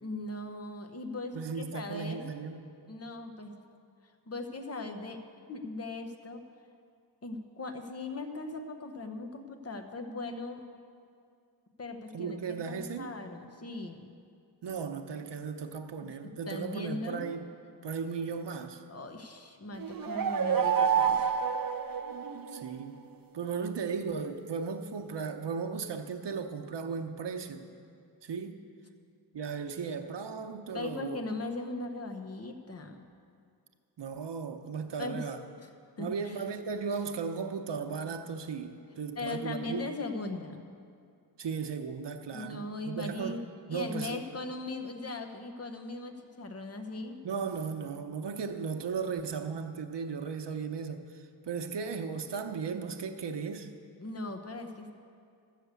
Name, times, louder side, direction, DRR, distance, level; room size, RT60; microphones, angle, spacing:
voice 1, 0.0-2.2 2.9-3.5 4.3-5.2 5.5-6.4 7.2-10.6 11.8-12.4 12.7-14.1 16.5-17.2 18.9-21.3 30.7-33.0 35.0-35.2 36.0-36.3 39.2-40.6 42.3-43.4 43.7-47.2 54.0-54.9, left 2 dB, 35° left, 5 dB, 1.0 m, -39 dB
voice 2, 1.3-2.6 12.1-13.1 14.6-17.5 17.8-18.8 22.5-23.0 23.3-27.7 28.2-28.6 29.3-31.2 34.0-35.4 36.0-39.9 41.4-43.4 43.7-44.2 47.2-53.7, right 5 dB, 85° right, 5 dB, 0.8 m, -36 dB
sound 1, 19.8-22.7, right 7 dB, 55° right, 0.7 m, -28 dB
12.5 x 6.7 x 8.1 m, 2.3 s
wide cardioid pair, 85°, 40 cm